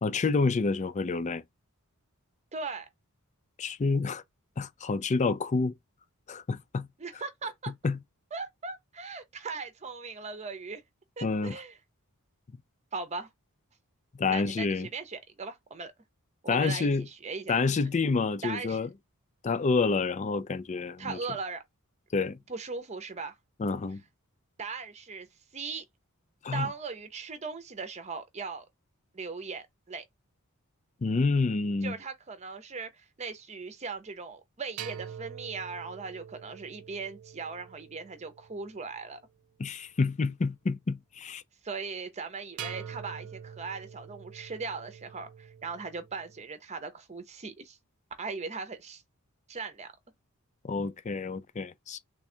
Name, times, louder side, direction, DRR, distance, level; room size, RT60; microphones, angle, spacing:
voice 1, 0.0-1.4 3.6-4.2 4.6-5.7 6.3-6.9 7.8-8.0 11.2-11.6 14.1-14.9 16.5-17.1 17.5-18.9 19.4-21.2 22.1-22.4 23.6-24.0 26.4-26.7 31.0-31.9 39.6-41.4 50.6-52.0, left 4 dB, 30° left, 0.4 m, -28 dB
voice 2, 2.5-2.9 7.0-7.7 8.3-10.8 11.2-11.7 12.9-13.3 14.3-15.9 16.4-17.6 18.4-18.8 21.0-21.6 22.5-23.3 24.6-25.3 25.5-25.8 26.5-28.7 29.1-30.0 31.8-39.2 41.6-47.8 48.2-49.0 49.5-49.9, right 4 dB, 30° right, 0.7 m, -38 dB
sound 1, 34.8-39.1 42.6-46.4, right 8 dB, 70° right, 0.4 m, -45 dB
3.4 x 2.4 x 4.3 m
head